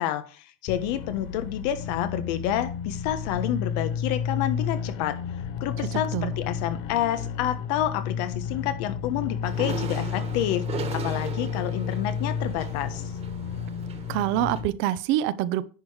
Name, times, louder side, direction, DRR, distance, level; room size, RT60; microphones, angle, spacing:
voice 1, 0.0-5.2 5.6-13.1, left 11 dB, 90° left, 1.2 m, -29 dB
sound 1, 0.7-14.7, left 7 dB, 65° left, 0.9 m, -32 dB
voice 2, 5.9-6.3 14.1-15.7, right 13 dB, 70° right, 0.7 m, -26 dB
sound 2, 9.4-14.6, right 5 dB, 30° right, 1.4 m, -38 dB
10.0 x 4.8 x 5.0 m
cardioid pair, 135°, 21 cm